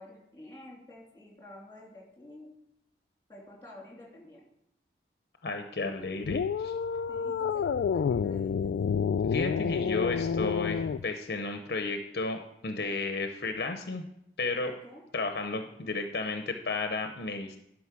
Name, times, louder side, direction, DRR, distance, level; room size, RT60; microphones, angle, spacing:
voice 1, 0.0-2.5 3.3-4.5 7.1-8.7 14.6-15.1, left 1 dB, 15° left, -2 dB, 2.9 m, -50 dB
voice 2, 5.4-6.7 9.3-14.0 14.4-14.7 15.1-17.6, left 3 dB, 65° left, 6 dB, 0.7 m, -33 dB
sound 1, 6.2-11.0, left 6 dB, 80° left, 0.3 m, -29 dB
11.5 x 5.2 x 6.0 m, 0.76 s
head